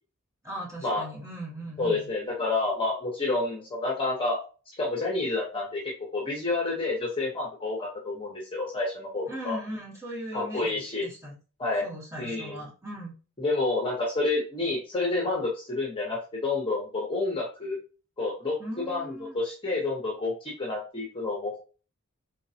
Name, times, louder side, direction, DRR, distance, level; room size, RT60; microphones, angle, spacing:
voice 1, 0.4-2.1 9.3-11.3 11.8-13.1 18.6-19.4, right 1 dB, 15° right, -7 dB, 2.1 m, -38 dB
voice 2, 1.8-4.4 4.8-5.8 6.1-9.6 10.3-11.1 11.6-11.8 12.2-12.6 13.4-17.8 18.2-21.6, left 3 dB, 25° left, -3 dB, 1.0 m, -29 dB
4.0 x 3.7 x 2.8 m, 0.35 s
head